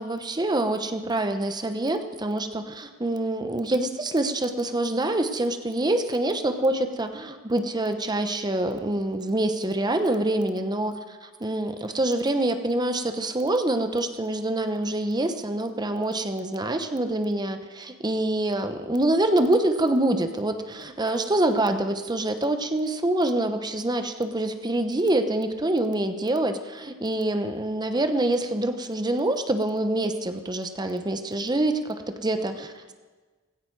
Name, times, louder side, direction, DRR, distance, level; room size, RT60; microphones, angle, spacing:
voice 1, 0.0-32.9, right 1 dB, 20° right, 8 dB, 0.9 m, -26 dB
16.0 x 16.0 x 4.7 m, 1.4 s
head